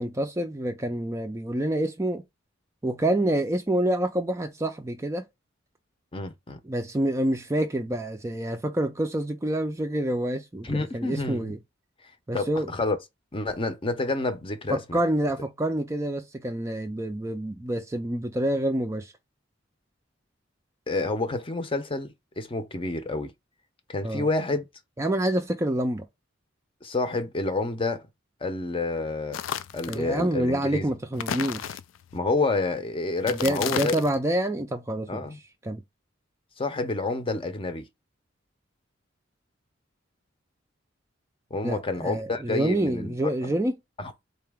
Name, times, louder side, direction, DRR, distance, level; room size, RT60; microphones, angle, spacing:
voice 1, 0.0-2.2 2.8-5.2 6.6-11.6 12.3-12.7 14.7-19.1 24.0-24.3 25.0-26.1 29.9-31.8 33.3-35.2 35.6-35.8 41.6-43.7, right 1 dB, 15° right, 0.4 m, -27 dB
voice 2, 6.1-6.6 10.6-11.5 12.3-13.0 13.3-15.0 20.9-23.3 23.9-24.6 26.8-28.0 28.4-29.4 29.7-30.9 32.1-33.9 35.1-35.4 36.6-37.8 41.5-43.5 44.0-44.2, left 2 dB, 30° left, 0.6 m, -29 dB
sound 1, 29.3-30.0 31.1-32.2 33.2-34.2, left 9 dB, 85° left, 0.3 m, -33 dB
3.9 x 2.8 x 3.4 m
head